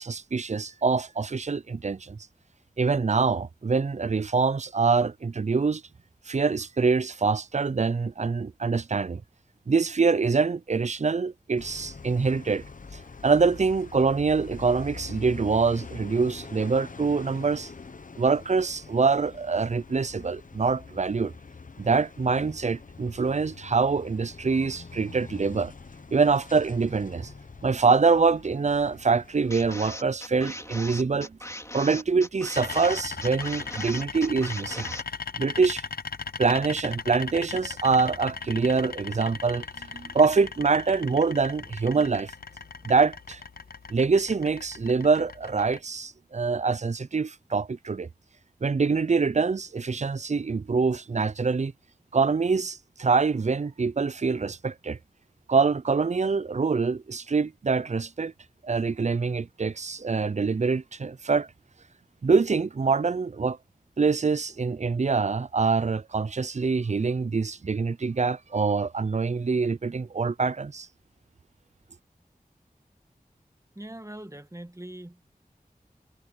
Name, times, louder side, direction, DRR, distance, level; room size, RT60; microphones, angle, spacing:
voice 1, 0.0-2.2 2.8-5.8 6.3-9.2 9.7-12.6 12.9-17.7 18.2-21.3 21.8-25.7 26.1-27.3 27.6-31.4 31.7-34.9 35.4-35.8 36.4-42.3 42.8-43.4 43.9-48.1 48.6-51.7 52.1-55.0 55.5-58.3 58.6-61.5 62.2-63.6 64.0-70.9, right 4 dB, 50° right, 0.5 m, -25 dB
sound 1, 11.6-29.8, left 4 dB, 60° left, 0.8 m, -44 dB
sound 2, 29.5-35.0, left 1 dB, 20° left, 2.9 m, -39 dB
sound 3, 32.5-45.8, left 5 dB, 90° left, 0.6 m, -38 dB
voice 2, 73.8-75.2, right 1 dB, 20° right, 2.0 m, -41 dB
wide cardioid pair, 45°, 15 cm